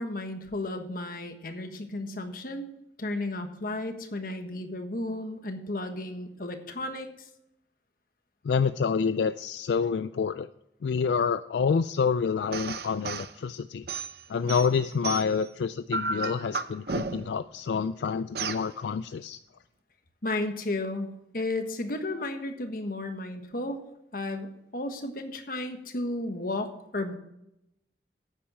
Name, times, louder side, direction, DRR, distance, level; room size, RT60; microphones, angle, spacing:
voice 1, 0.0-2.7 3.0-7.1 20.2-23.8 24.1-27.1, left 2 dB, 50° left, 6 dB, 1.3 m, -33 dB
voice 2, 8.4-10.5 10.8-13.9 14.3-19.4, left 6 dB, 75° left, 12 dB, 0.3 m, -28 dB
sound 1, 12.5-13.3 13.9-15.5 15.9-17.4 18.3-18.7, right 4 dB, 60° right, 0.6 m, -33 dB
9.8 x 8.7 x 4.8 m, 0.82 s
head